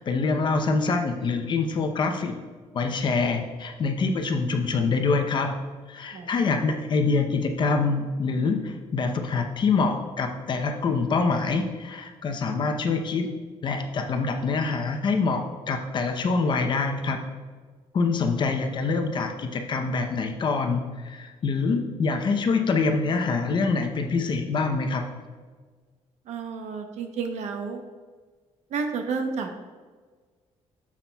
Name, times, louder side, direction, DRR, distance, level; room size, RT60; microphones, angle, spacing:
voice 1, 0.0-2.4 2.7-5.6 5.9-13.3 13.6-17.2 17.9-25.0, left 4 dB, 40° left, 5 dB, 0.7 m, -25 dB
voice 2, 26.3-27.8 28.7-29.6, right 5 dB, 75° right, 5 dB, 0.9 m, -31 dB
10.0 x 7.2 x 2.3 m, 1.5 s
cardioid pair, 155°, 12 cm